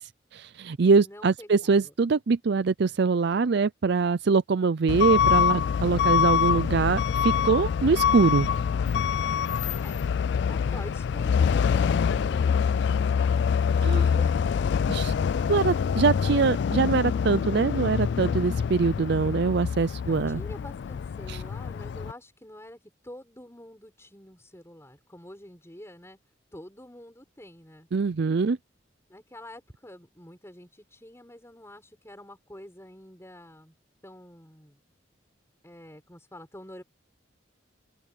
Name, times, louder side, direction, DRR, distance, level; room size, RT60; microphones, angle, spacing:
voice 1, 0.0-8.5 13.8-14.0 14.9-15.1 15.5-20.4 21.3-21.4 27.9-28.6, right 4 dB, 60° right, 0.5 m, -23 dB
voice 2, 1.0-1.9 9.8-10.0 10.4-13.4 13.7-14.9 20.0-26.2 26.5-27.9 29.1-33.7 34.0-34.8 35.6-36.8, left 1 dB, 15° left, 6.8 m, -47 dB
Truck / Alarm, 4.9-22.1, left 7 dB, 60° left, 0.3 m, -25 dB
head